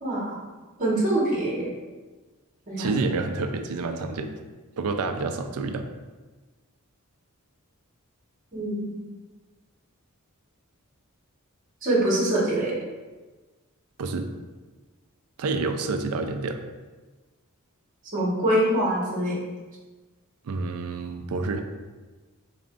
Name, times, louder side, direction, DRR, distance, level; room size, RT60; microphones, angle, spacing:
voice 1, 0.0-0.4 0.8-1.7 2.7-2.9 8.5-8.9 11.8-12.7 18.1-19.4, right 1 dB, 40° right, -5 dB, 1.1 m, -24 dB
voice 2, 2.8-4.3 4.8-5.9 14.0-14.3 15.4-16.6 20.4-21.6, right 3 dB, 80° right, 7 dB, 0.4 m, -28 dB
4.2 x 2.5 x 3.6 m, 1.3 s
head